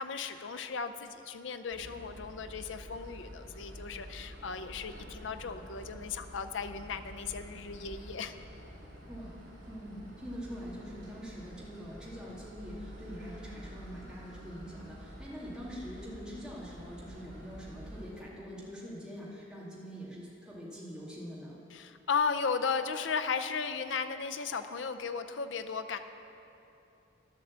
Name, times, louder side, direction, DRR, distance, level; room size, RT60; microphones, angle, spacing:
voice 1, 0.0-8.3 21.7-26.0, left 5 dB, 70° left, 8 dB, 0.6 m, -35 dB
sound 1, 1.7-18.1, equal, 65° right, 3.0 m, -48 dB
voice 2, 9.7-21.6, equal, 5° right, -7 dB, 2.2 m, -44 dB
11.0 x 7.6 x 7.4 m, 2.8 s
head